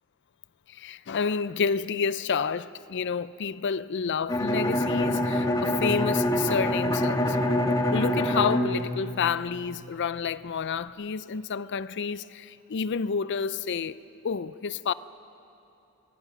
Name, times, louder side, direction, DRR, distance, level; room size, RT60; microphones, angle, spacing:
voice 1, 0.7-7.4 7.9-14.9, left 6 dB, 55° left, 0.5 m, -29 dB
Bowed string instrument, 4.3-10.0, left 1 dB, 20° left, 1.4 m, -26 dB
27.0 x 21.0 x 6.0 m
head